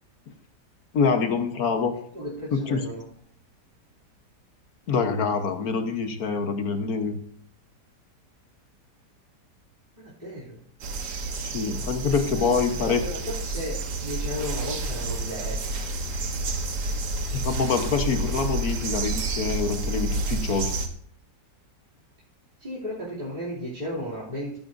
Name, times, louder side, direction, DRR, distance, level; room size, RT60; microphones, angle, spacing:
voice 1, 0.9-1.9 2.5-2.8 4.9-7.2 11.4-13.0 17.3-20.7, left 5 dB, 60° left, 7 dB, 1.5 m, -25 dB
voice 2, 2.1-3.1 10.0-10.6 12.1-15.9 18.1-18.3 22.6-24.6, equal, 25° right, -8 dB, 2.9 m, -35 dB
sound 1, 10.8-20.9, right 2 dB, 70° right, 1.8 m, -30 dB
16.0 x 9.5 x 2.6 m, 0.62 s
omnidirectional pair, 1.8 m